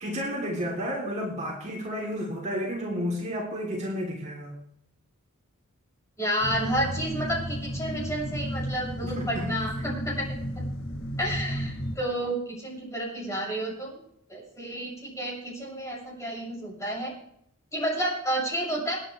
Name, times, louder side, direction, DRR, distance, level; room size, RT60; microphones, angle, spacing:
voice 1, 0.0-4.5 9.0-9.5 9.8-10.0, equal, 35° right, -2 dB, 3.3 m, -32 dB
voice 2, 6.2-10.3 11.2-14.0 14.3-17.1 17.7-19.0, right 1 dB, 15° left, -4 dB, 7.0 m, -30 dB
sound 1, 6.4-12.0, equal, 85° left, 2.6 m, -33 dB
28.5 x 9.9 x 3.4 m, 0.72 s
head